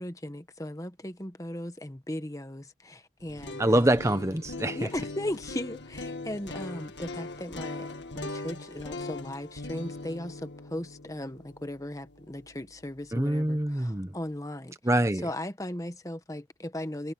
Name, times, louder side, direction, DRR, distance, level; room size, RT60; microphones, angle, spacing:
voice 1, 0.0-3.9 4.7-7.9 8.1-14.8 15.2-17.1, left 1 dB, 20° left, 1.3 m, -37 dB
sound 1, 3.2-13.2, left 2 dB, 70° left, 1.9 m, -40 dB
voice 2, 3.6-4.9 13.1-14.2 14.8-15.2, right 1 dB, 15° right, 0.9 m, -25 dB
head